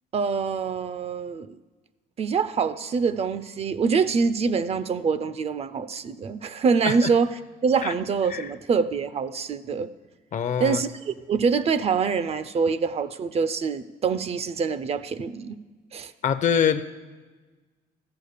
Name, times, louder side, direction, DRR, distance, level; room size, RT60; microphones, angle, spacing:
voice 1, 0.1-1.6 2.2-7.3 7.6-9.9 10.6-15.6 15.9-16.1, right 5 dB, 35° right, 14 dB, 0.5 m, -25 dB
voice 2, 10.3-10.8 16.2-16.8, left 8 dB, 45° left, 11 dB, 0.7 m, -24 dB
14.0 x 5.1 x 6.6 m, 1.3 s
cardioid pair, 110°, 17 cm